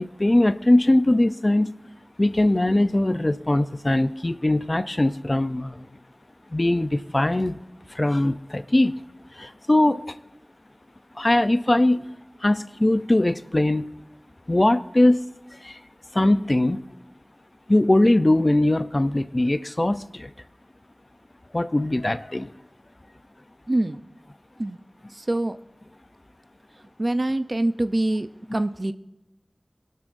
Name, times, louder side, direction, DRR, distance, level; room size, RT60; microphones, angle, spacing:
voice 1, 0.0-1.7 2.2-5.9 6.5-7.6 7.9-9.0 9.3-10.2 11.2-12.1 12.4-13.9 14.5-15.2 15.5-15.8 16.1-16.8 17.7-20.3 21.5-22.5 28.5-28.6, left 1 dB, 40° left, 11 dB, 0.6 m, -21 dB
voice 2, 23.7-24.1 24.6-24.8 25.1-25.6 26.8-28.9, right 1 dB, 45° right, 10 dB, 0.6 m, -25 dB
24.5 x 12.0 x 2.6 m, 0.92 s
wide cardioid pair, 55°, 0 cm